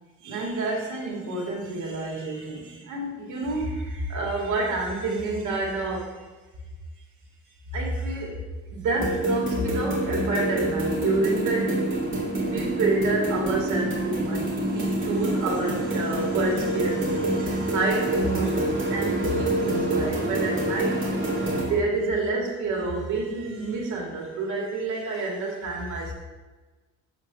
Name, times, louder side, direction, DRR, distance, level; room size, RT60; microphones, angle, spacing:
voice 1, 0.2-6.1 7.7-11.9 12.5-14.4 14.7-21.0 21.5-26.1, right 3 dB, 85° right, -2 dB, 2.6 m, -28 dB
sound 1, 8.9-21.7, right 1 dB, 40° right, 2.8 m, -26 dB
7.7 x 4.5 x 6.4 m, 1.2 s
cardioid pair, 90°, 30 cm